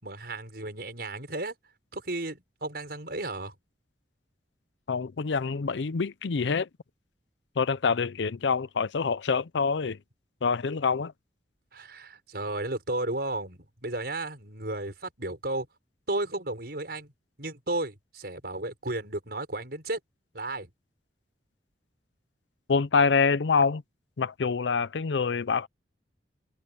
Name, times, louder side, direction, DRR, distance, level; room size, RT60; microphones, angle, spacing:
voice 1, 0.0-1.6 1.9-3.5 11.7-15.7 16.1-17.1 17.4-20.0 20.3-20.7, right 2 dB, 60° right, 6.6 m, -33 dB
voice 2, 4.9-6.7 7.6-10.0 10.4-11.1 22.7-23.8 24.2-25.7, left 5 dB, 80° left, 0.6 m, -26 dB
head